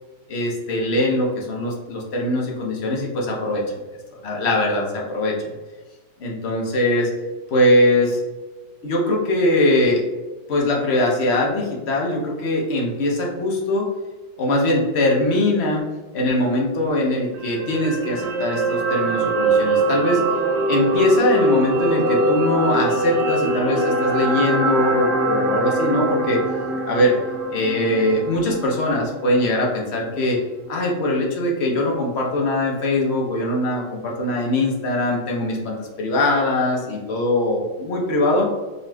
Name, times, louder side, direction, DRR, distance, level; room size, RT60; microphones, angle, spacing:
voice 1, 0.3-3.6 4.2-5.3 6.2-7.1 7.5-8.2 8.8-10.0 10.5-13.9 14.4-15.8 16.1-20.2 20.7-26.4 26.9-27.2 27.5-30.4 30.7-38.5, left 1 dB, 50° left, -2 dB, 0.9 m, -21 dB
sound 1, 17.3-29.7 30.0-30.2, right 2 dB, 80° right, 1.2 m, -23 dB
5.0 x 3.0 x 2.3 m, 1.2 s
omnidirectional pair, 1.8 m